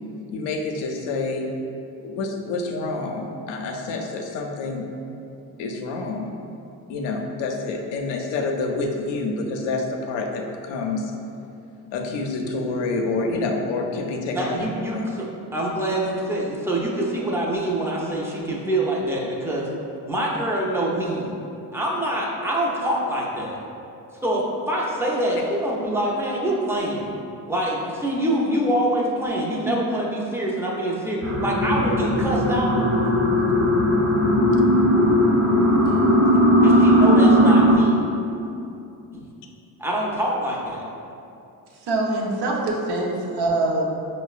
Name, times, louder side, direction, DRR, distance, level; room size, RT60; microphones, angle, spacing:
voice 1, 0.3-1.5 2.0-4.8 5.6-6.3 6.9-11.1 11.9-15.0 33.2-33.4, left 3 dB, 85° left, 2 dB, 0.5 m, -28 dB
voice 2, 14.3-19.7 20.1-21.3 21.7-23.6 24.2-27.1 27.5-33.1 36.6-38.0 39.1-39.3 39.8-40.8, right 1 dB, 5° right, -4 dB, 0.5 m, -25 dB
sound 1, 31.2-37.7, equal, 40° right, 0.8 m, -17 dB
voice 3, 41.8-43.9, right 2 dB, 70° right, -3 dB, 0.7 m, -24 dB
5.1 x 2.1 x 2.4 m, 2.7 s
cardioid pair, 85°, 41 cm